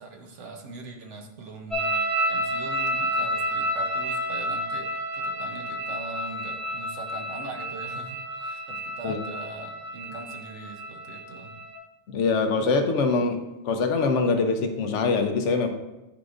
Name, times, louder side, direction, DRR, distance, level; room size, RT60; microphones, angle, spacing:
voice 1, 0.0-4.9 5.1-11.5 13.3-13.4, right 2 dB, 80° right, 4 dB, 1.2 m, -41 dB
sound 1, 1.7-11.8, equal, ahead, 1.7 m, -30 dB
voice 2, 12.1-13.4 13.6-15.7, left 4 dB, 85° left, 6 dB, 1.1 m, -23 dB
10.0 x 4.7 x 2.5 m, 1.0 s
omnidirectional pair, 1.2 m